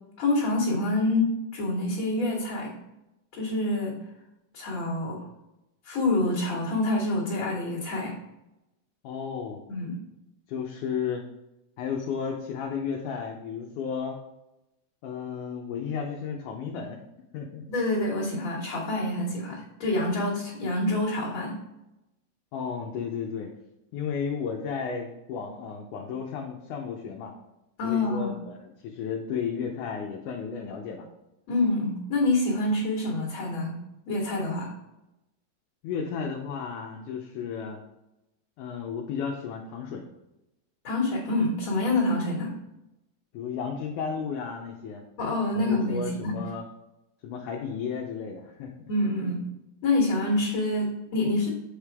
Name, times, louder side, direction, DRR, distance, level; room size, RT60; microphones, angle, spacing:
voice 1, 0.2-2.7 3.3-4.0 4.5-5.3 5.8-8.2 9.7-10.0 17.7-21.6 27.8-28.4 31.5-33.8 34.1-34.7 40.8-42.5 45.2-46.4 48.9-49.4 49.8-51.5, left 2 dB, 45° left, -3 dB, 2.2 m, -27 dB
voice 2, 9.0-9.6 10.5-11.2 11.8-14.2 15.0-17.0 17.3-17.6 22.5-23.5 23.9-27.3 27.8-31.1 35.8-37.8 38.6-40.1 43.3-45.0 45.6-46.6 47.2-48.9, left 6 dB, 75° left, 1 dB, 2.0 m, -33 dB
8.1 x 5.0 x 3.5 m, 0.91 s
omnidirectional pair, 4.0 m